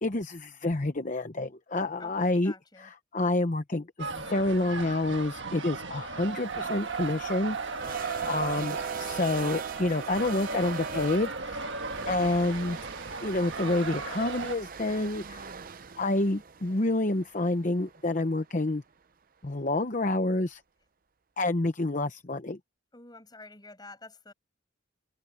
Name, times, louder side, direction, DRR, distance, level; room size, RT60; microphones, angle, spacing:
voice 1, 0.0-12.8 13.2-15.5 16.0-18.8 19.4-20.6 21.4-22.6, left 2 dB, 40° left, 0.9 m, -29 dB
voice 2, 2.0-2.9 22.9-24.3, left 2 dB, 20° left, 7.8 m, -49 dB
sound 1, 4.0-14.6, right 4 dB, 65° right, 1.5 m, -36 dB
sound 2, 6.5-18.7, right 6 dB, 45° right, 0.6 m, -41 dB
head